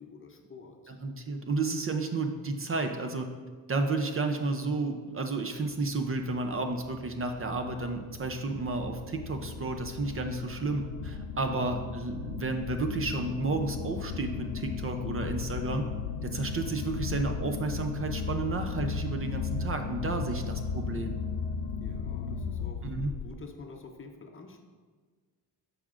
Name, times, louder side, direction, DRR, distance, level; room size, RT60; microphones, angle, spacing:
voice 1, 0.0-0.8 11.2-11.5 21.8-22.9 23.2-24.7, left 4 dB, 35° left, 4 dB, 0.7 m, -48 dB
voice 2, 0.9-3.3 3.7-15.9 16.2-21.2 22.8-23.1, right 3 dB, 35° right, 5 dB, 0.6 m, -32 dB
sound 1, 6.0-23.3, left 6 dB, 90° left, 0.5 m, -36 dB
13.5 x 5.0 x 2.5 m, 1.5 s
cardioid pair, 115°, 39 cm